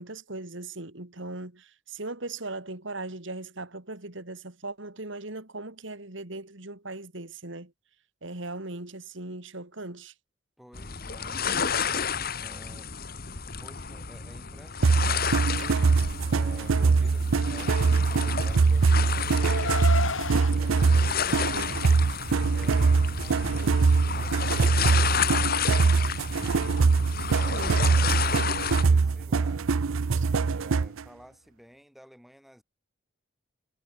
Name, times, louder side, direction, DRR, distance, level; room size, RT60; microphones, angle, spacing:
voice 1, 0.0-7.7 8.2-10.1 21.3-21.7 23.6-23.7 27.2-27.7 30.1-30.3, right 2 dB, 65° right, 2.6 m, -39 dB
voice 2, 10.6-13.0 13.6-15.8 16.3-19.9 20.5-22.0 22.5-26.8 27.3-29.7 30.4-32.6, equal, ahead, 5.2 m, -52 dB
sound 1, 10.7-28.8, left 7 dB, 45° left, 1.6 m, -31 dB
sound 2, 14.8-31.0, right 4 dB, 85° right, 0.6 m, -23 dB
Car, 18.0-20.5, left 5 dB, 70° left, 1.0 m, -33 dB
head